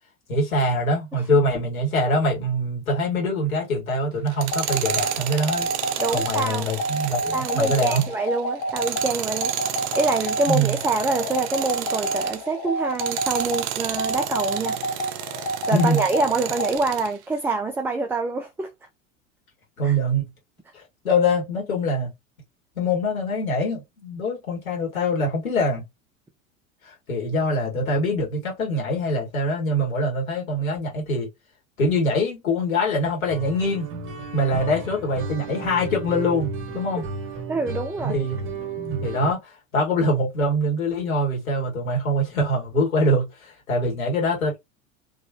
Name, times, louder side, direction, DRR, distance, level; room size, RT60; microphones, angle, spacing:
voice 1, 0.3-5.7 6.1-8.1 10.5-10.7 15.7-16.0 19.8-20.3 20.7-22.1 22.8-25.8 26.8-31.3 31.8-33.9 34.3-37.0 38.0-44.6, left 1 dB, 75° left, 2.0 m, -24 dB
Tools, 4.3-12.5 12.9-17.1, right 11 dB, 55° right, 0.7 m, -31 dB
sound 1, 4.5-16.8, right 1 dB, 35° left, 1.2 m, -29 dB
voice 2, 6.0-6.7 7.3-9.5 10.0-14.7 15.7-18.7 19.8-20.0 37.5-38.2, right 3 dB, 5° right, 0.4 m, -26 dB
sound 2, 33.3-39.3, right 3 dB, 30° right, 1.6 m, -33 dB
3.8 x 3.0 x 2.9 m
figure-of-eight pair, 85°, 42 cm